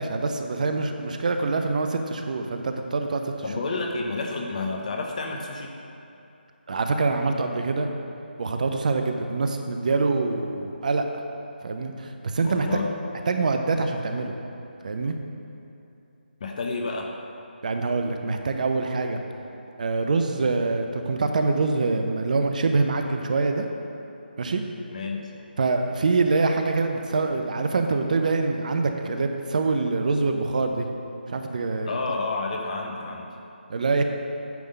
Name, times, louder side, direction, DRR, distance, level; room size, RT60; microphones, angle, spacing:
voice 1, 0.0-3.2 6.7-7.9 8.4-11.1 11.6-12.7 13.3-14.4 14.8-15.2 17.6-19.2 19.8-23.7 24.4-24.6 25.6-30.9 31.3-31.9 33.7-34.0, right 3 dB, 45° right, 5 dB, 0.6 m, -25 dB
voice 2, 3.4-5.7 12.4-12.9 16.4-17.1 24.9-25.2 31.8-33.3, left 3 dB, 40° left, 1 dB, 0.9 m, -30 dB
9.2 x 3.6 x 6.6 m, 2.8 s
figure-of-eight pair, 155°, 6 cm